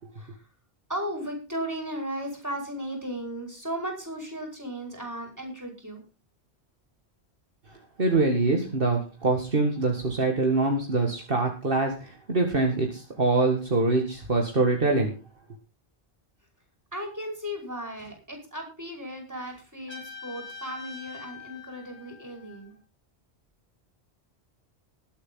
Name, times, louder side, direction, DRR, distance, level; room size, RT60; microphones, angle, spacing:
voice 1, 0.9-6.0 16.9-22.7, equal, 15° right, 2 dB, 5.5 m, -35 dB
voice 2, 8.0-15.2, right 3 dB, 55° right, 2 dB, 2.2 m, -24 dB
Trumpet, 19.9-22.7, left 5 dB, 35° left, 6.5 m, -44 dB
20.5 x 8.4 x 3.9 m, 0.32 s
omnidirectional pair, 1.1 m